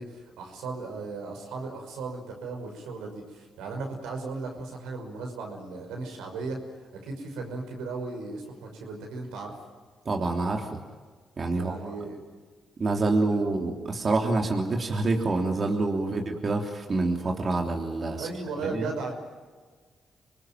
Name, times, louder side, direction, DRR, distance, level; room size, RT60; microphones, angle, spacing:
voice 1, 0.0-6.6 6.9-9.6 11.5-12.2 16.0-16.2 18.1-19.2, right 3 dB, 85° right, 2 dB, 6.0 m, -36 dB
voice 2, 10.0-10.8 11.4-12.0 12.8-18.3 18.6-18.9, right 3 dB, 45° right, 2 dB, 3.3 m, -27 dB
26.5 x 20.0 x 9.2 m, 1.5 s
supercardioid pair, 55°, 0 cm